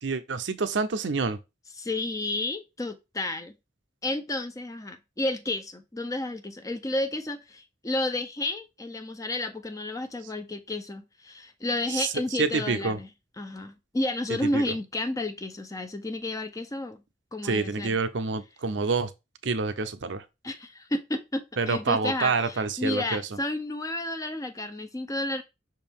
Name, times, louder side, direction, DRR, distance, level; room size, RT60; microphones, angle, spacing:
voice 1, 0.0-1.4 11.9-13.0 14.3-14.8 17.4-19.1 19.4-20.3 21.6-23.4, right 4 dB, 70° right, 0.6 m, -28 dB
voice 2, 1.8-3.5 4.0-13.1 13.4-17.0 17.3-18.0 20.4-25.4, left 2 dB, 20° left, 0.5 m, -31 dB
6.0 x 4.5 x 3.6 m
head